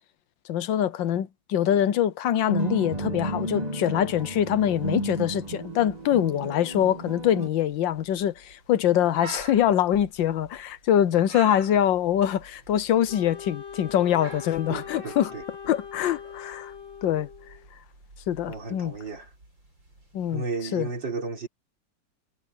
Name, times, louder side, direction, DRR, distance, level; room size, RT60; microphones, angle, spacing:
voice 1, 0.5-15.3 15.6-16.7 17.0-17.3 18.3-18.9 20.1-20.4 20.7-20.9, left 10 dB, 75° left, 1.5 m, -24 dB
sound 1, 2.5-7.5, right 1 dB, 20° right, 1.7 m, -32 dB
sound 2, 3.8-20.4, right 4 dB, 85° right, 8.0 m, -49 dB
Wind instrument woodwind instrument, 13.1-17.7, left 7 dB, 40° left, 2.1 m, -41 dB
voice 2, 14.7-15.4 18.5-19.3 20.3-21.5, right 4 dB, 70° right, 4.6 m, -33 dB
omnidirectional pair, 2.1 m